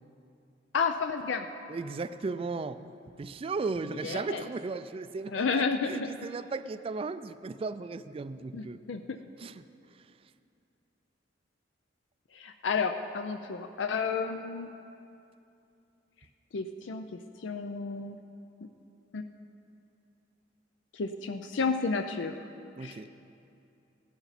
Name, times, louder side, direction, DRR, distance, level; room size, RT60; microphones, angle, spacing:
voice 1, 0.7-1.5 4.0-4.4 5.3-6.1 8.5-9.2 12.3-14.7 16.5-18.2 19.1-19.2 20.9-22.4 22.8-23.0, left 5 dB, 85° left, 7 dB, 0.5 m, -31 dB
voice 2, 1.7-2.9 3.2-8.8 9.4-10.1 22.8-23.1, right 4 dB, 30° right, 13 dB, 0.3 m, -36 dB
16.5 x 11.0 x 4.1 m, 2.7 s
head